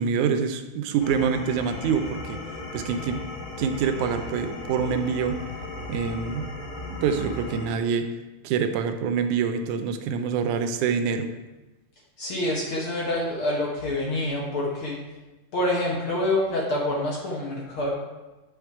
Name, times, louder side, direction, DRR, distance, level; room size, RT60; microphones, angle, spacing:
voice 1, 0.0-2.4 2.7-3.2 3.6-5.4 5.9-6.5 6.9-8.1 8.4-11.3, right 6 dB, 80° right, 7 dB, 2.0 m, -26 dB
sound 1, 1.0-7.7, left 2 dB, 85° left, 2.9 m, -36 dB
voice 2, 12.2-15.0 15.5-17.9, left 1 dB, 60° left, -3 dB, 1.5 m, -26 dB
8.6 x 5.0 x 4.6 m, 1.1 s
omnidirectional pair, 3.5 m